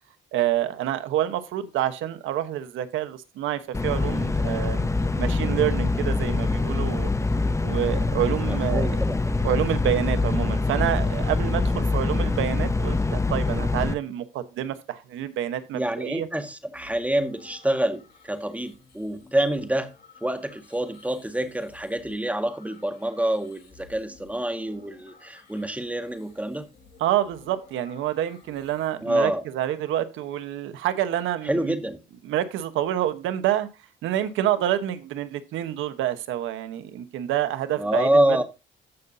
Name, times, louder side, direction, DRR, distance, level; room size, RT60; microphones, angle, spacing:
voice 1, 0.3-4.9 5.1-7.1 7.6-8.9 9.4-16.3 27.0-31.8 32.2-33.7 34.0-38.4, right 11 dB, 90° right, 1.1 m, -27 dB
sound 1, 3.7-13.9, left 3 dB, 15° left, 0.7 m, -24 dB
voice 2, 8.5-9.3 15.7-19.9 20.2-26.7 29.0-29.4 31.4-32.0 37.8-38.4, right 1 dB, 5° right, 1.7 m, -26 dB
sound 2, 16.7-29.0, left 4 dB, 55° left, 4.8 m, -54 dB
15.0 x 5.6 x 2.7 m
cardioid pair, 90°, 20 cm